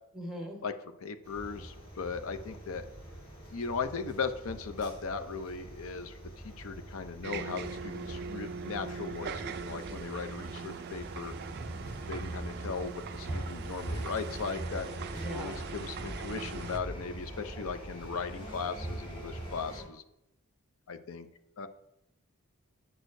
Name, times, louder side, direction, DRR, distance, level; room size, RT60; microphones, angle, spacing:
voice 1, 0.1-0.6 15.1-15.6, equal, 5° right, 0 dB, 1.3 m, -40 dB
voice 2, 1.0-2.9 3.5-6.2 6.4-11.3 12.1-20.0 20.9-21.3 21.6-21.7, left 5 dB, 65° left, 9 dB, 0.5 m, -38 dB
sound 1, 1.2-19.8, right 1 dB, 25° left, 2.8 m, -42 dB
sound 2, 7.2-16.8, right 6 dB, 50° right, 0.3 m, -41 dB
8.8 x 6.4 x 2.6 m, 0.85 s
head